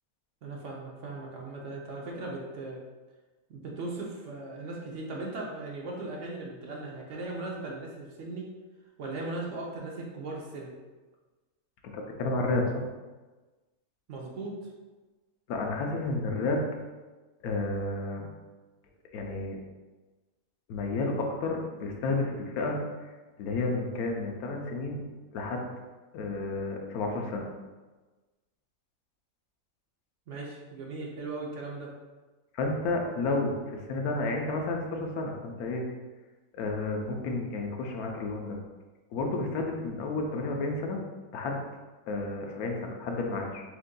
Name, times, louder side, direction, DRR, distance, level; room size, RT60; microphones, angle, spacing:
voice 1, 0.4-2.8 3.5-8.5 9.0-10.7 14.1-14.6 30.3-31.9, right 2 dB, 65° right, -2 dB, 1.0 m, -38 dB
voice 2, 11.8-12.6 15.5-16.6 17.4-18.3 19.1-19.6 20.7-23.1 23.4-25.0 25.3-25.6 26.1-27.5 32.5-35.8 36.5-38.6 39.1-41.0 41.3-41.6 42.1-43.6, left 2 dB, 85° left, 1 dB, 1.2 m, -31 dB
7.3 x 2.6 x 2.2 m, 1.3 s
omnidirectional pair, 1.5 m